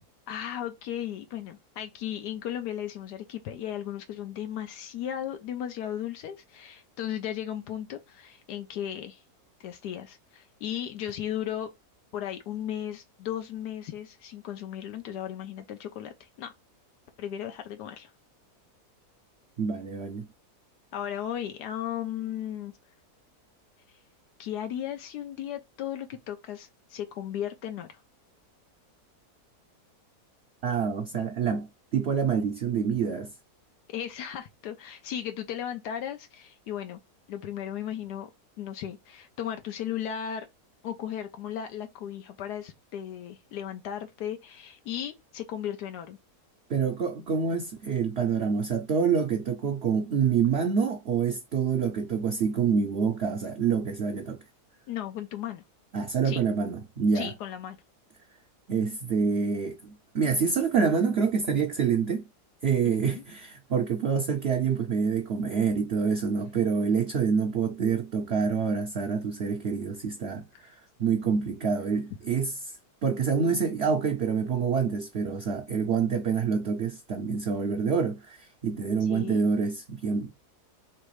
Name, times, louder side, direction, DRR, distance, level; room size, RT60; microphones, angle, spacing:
voice 1, 0.3-9.2 9.6-11.7 12.1-16.5 17.2-18.1 20.9-22.7 24.4-28.0 33.9-37.0 37.3-38.3 38.6-40.5 40.8-46.2 54.9-55.6 56.2-56.4 57.1-57.8 62.9-63.2 79.1-79.4, left 10 dB, 85° left, 1.2 m, -36 dB
voice 2, 19.6-20.3 30.6-33.3 46.7-54.4 55.9-57.3 58.7-62.2 62.6-72.6 73.0-80.3, right 6 dB, 60° right, 0.7 m, -27 dB
3.4 x 3.1 x 4.6 m
omnidirectional pair, 1.7 m